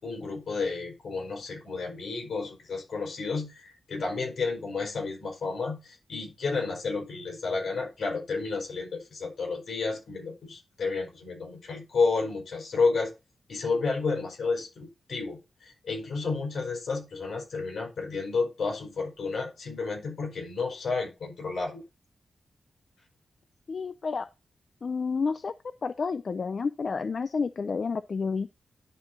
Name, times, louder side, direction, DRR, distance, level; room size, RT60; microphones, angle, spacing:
voice 1, 0.0-13.1 13.5-21.8, left 4 dB, 70° left, 4.7 m, -31 dB
voice 2, 23.7-24.3 24.8-25.5 25.8-28.5, left 5 dB, 50° left, 0.4 m, -30 dB
11.0 x 4.4 x 3.9 m
wide cardioid pair, 135°, 0 cm